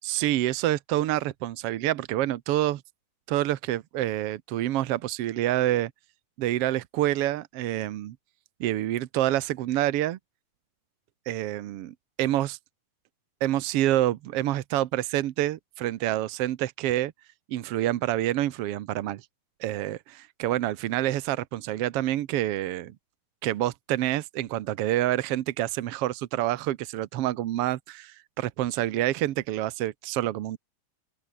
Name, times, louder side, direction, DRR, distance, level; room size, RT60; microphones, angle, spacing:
voice 1, 0.0-2.8 3.3-5.9 6.4-8.1 8.6-10.2 11.3-12.6 13.4-17.1 17.5-19.2 19.6-22.9 23.4-30.6, right 14 dB, 75° right, 1.4 m, -27 dB
open air
omnidirectional pair, 3.8 m